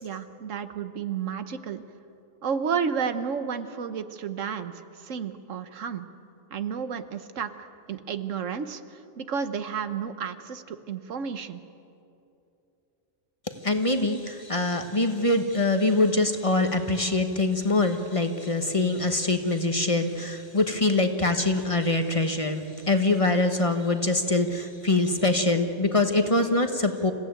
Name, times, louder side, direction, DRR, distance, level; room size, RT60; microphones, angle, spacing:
voice 1, 0.0-1.8 2.4-6.0 6.5-11.6, right 6 dB, 85° right, 10 dB, 1.4 m, -32 dB
voice 2, 13.6-27.1, left 2 dB, 25° left, 6 dB, 1.2 m, -24 dB
27.5 x 16.0 x 9.1 m, 2.7 s
omnidirectional pair, 1.3 m